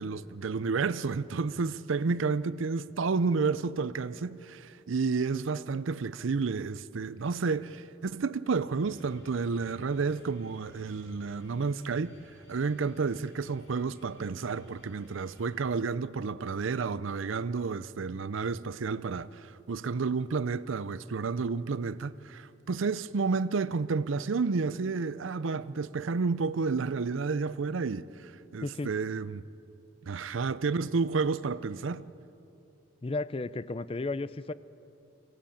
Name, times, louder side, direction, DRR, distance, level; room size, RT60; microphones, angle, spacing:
voice 1, 0.0-12.2 12.5-29.4 30.1-32.0, right 4 dB, 75° right, 0.5 m, -31 dB
sound 1, 8.8-15.5, left 1 dB, 70° left, 5.4 m, -57 dB
voice 2, 28.6-28.9 33.0-34.5, left 2 dB, 25° left, 0.4 m, -33 dB
23.0 x 16.0 x 8.7 m
head